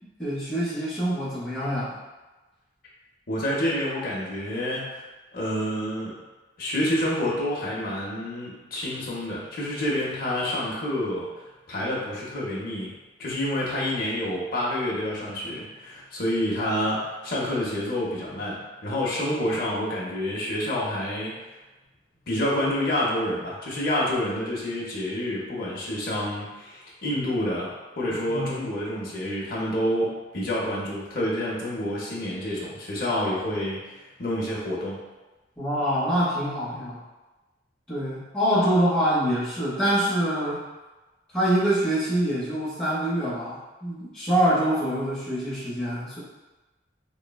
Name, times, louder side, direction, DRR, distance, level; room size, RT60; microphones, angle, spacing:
voice 1, 0.2-2.0 28.3-28.5 35.6-37.0 37.9-40.6 41.3-46.2, right 1 dB, 5° left, -13 dB, 0.7 m, -25 dB
voice 2, 3.3-5.0 5.3-6.2 6.6-11.3 11.7-12.9 13.2-21.4 22.3-35.0, left 1 dB, 50° left, -5 dB, 0.6 m, -28 dB
3.1 x 2.1 x 2.3 m, 1.2 s
head